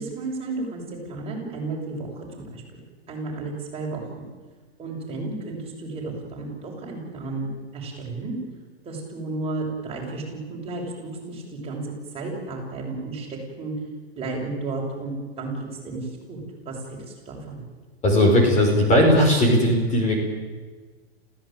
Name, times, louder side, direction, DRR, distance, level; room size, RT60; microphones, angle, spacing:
voice 1, 0.0-2.6 3.1-4.2 4.8-8.4 8.8-13.7 14.2-15.5 15.8-16.4 16.7-17.6, right 3 dB, 20° right, -2 dB, 7.2 m, -33 dB
voice 2, 18.0-20.2, equal, 20° left, 2 dB, 5.2 m, -18 dB
28.0 x 16.0 x 9.2 m, 1.4 s
hypercardioid pair, 145°, 32 cm